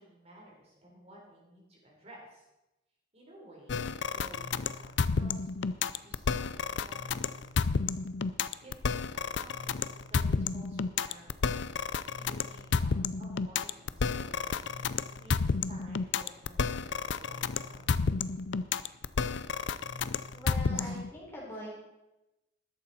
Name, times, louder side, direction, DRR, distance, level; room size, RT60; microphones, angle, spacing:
voice 1, 0.0-2.5 3.1-7.5 8.6-11.4 12.1-18.0 20.7-21.0 21.5-21.7, equal, 35° right, -3 dB, 3.8 m, -55 dB
sound 1, 3.7-21.1, left 5 dB, 70° left, 0.5 m, -31 dB
voice 2, 20.3-21.8, left 1 dB, 15° left, -5 dB, 3.6 m, -42 dB
13.5 x 11.5 x 4.2 m, 0.97 s
head